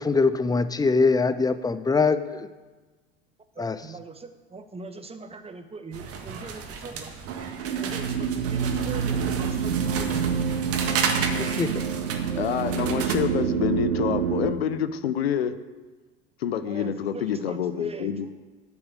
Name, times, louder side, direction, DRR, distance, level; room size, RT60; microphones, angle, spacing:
voice 1, 0.0-2.5 3.6-3.8 11.3-11.8, left 4 dB, 10° left, 13 dB, 0.7 m, -23 dB
voice 2, 3.5-7.1 7.7-10.4 16.7-18.3, right 3 dB, 20° right, 8 dB, 1.3 m, -41 dB
sound 1, 5.9-13.1, right 6 dB, 50° right, 1.7 m, -32 dB
sound 2, 7.3-14.5, right 7 dB, 70° right, 0.8 m, -27 dB
voice 3, 12.4-15.6 16.4-18.3, left 9 dB, 80° left, 12 dB, 0.8 m, -27 dB
9.6 x 8.2 x 8.4 m, 1.3 s
hypercardioid pair, 70°, 31 cm